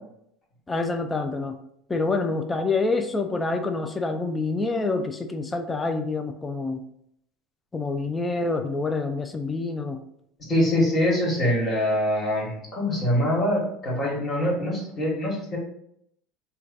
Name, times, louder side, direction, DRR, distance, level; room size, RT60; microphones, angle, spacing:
voice 1, 0.7-1.6 1.9-6.8 7.7-10.0, left 3 dB, 15° left, 7 dB, 0.3 m, -27 dB
voice 2, 10.5-15.6, left 1 dB, 35° left, -3 dB, 1.5 m, -24 dB
3.1 x 2.2 x 3.7 m, 0.72 s
supercardioid pair, 105°, 0 cm